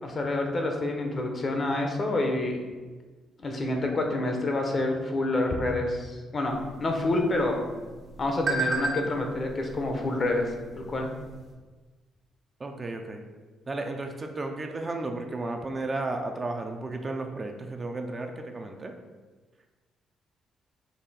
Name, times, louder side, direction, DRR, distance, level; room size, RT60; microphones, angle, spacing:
voice 1, 0.0-2.6 3.4-6.5 6.8-7.6 8.2-10.5 10.8-11.1, left 2 dB, 40° left, 2 dB, 0.7 m, -27 dB
sound 1, 6.4-11.5, right 2 dB, 50° right, 0.9 m, -36 dB
voice 2, 12.6-13.2 13.7-18.9, right 2 dB, 30° right, 4 dB, 0.4 m, -33 dB
4.1 x 2.6 x 4.1 m, 1.3 s
cardioid pair, 90°, 0 cm